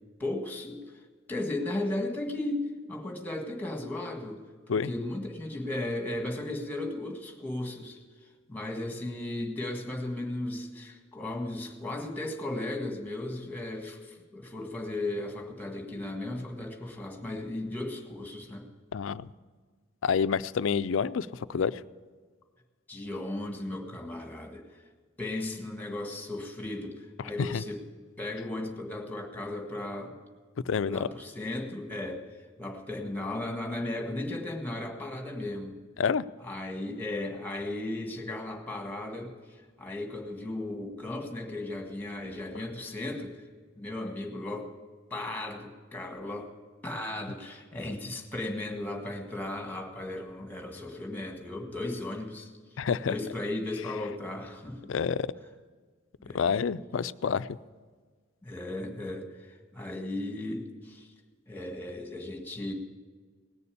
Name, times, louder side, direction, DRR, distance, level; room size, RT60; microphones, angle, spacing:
voice 1, 0.2-0.8 1.3-8.0 8.5-18.7 22.9-24.6 25.2-27.8 28.2-30.2 30.9-32.2 32.6-35.8 36.4-39.3 39.8-43.4 43.8-44.7 45.1-46.5 46.8-52.5 53.1-55.0 56.2-56.5 58.4-61.1 61.5-62.7, left 2 dB, 10° left, 3 dB, 1.7 m, -36 dB
voice 2, 18.9-19.3 20.0-21.8 27.4-27.6 30.7-31.1 36.0-36.2 52.8-53.1 54.9-55.3 56.3-57.5, left 6 dB, 75° left, 15 dB, 0.4 m, -28 dB
18.5 x 6.9 x 8.5 m, 1.5 s
head